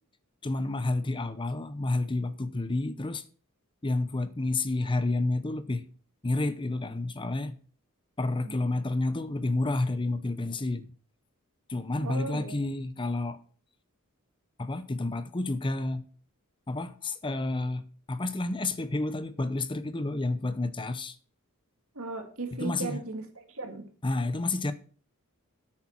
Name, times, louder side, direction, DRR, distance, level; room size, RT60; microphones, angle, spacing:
voice 1, 0.4-3.2 3.8-5.9 6.2-7.5 8.2-10.9 11.7-13.4 14.6-16.0 16.7-17.8 18.1-21.2 22.6-23.0 24.0-24.7, left 2 dB, 20° left, 0.7 m, -30 dB
voice 2, 12.0-12.6 21.9-23.9, right 3 dB, 65° right, 2.3 m, -37 dB
9.9 x 8.8 x 5.9 m
head